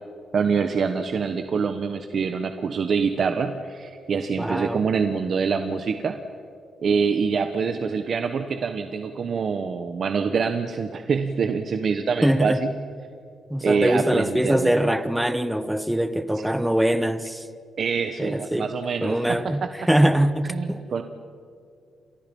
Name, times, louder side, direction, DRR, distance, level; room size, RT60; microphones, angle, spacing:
voice 1, 0.3-6.2 6.8-12.5 13.6-14.7 17.8-19.7 20.5-21.0, right 5 dB, 45° right, 1.2 m, -25 dB
voice 2, 4.4-4.8 12.2-12.6 13.5-17.5 18.2-18.7 19.0-20.8, right 1 dB, 5° right, 1.1 m, -23 dB
30.0 x 27.0 x 5.5 m
cardioid pair, 150°, 0 cm